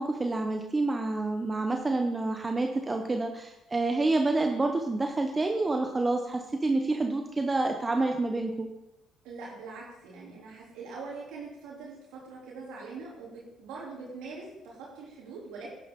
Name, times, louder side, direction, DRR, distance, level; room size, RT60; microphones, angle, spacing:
voice 1, 0.0-8.7, right 2 dB, 25° right, 3 dB, 1.2 m, -28 dB
voice 2, 9.2-15.7, right 4 dB, 75° right, -5 dB, 3.3 m, -43 dB
11.0 x 11.0 x 3.9 m, 0.91 s
hypercardioid pair, 55°, 0 cm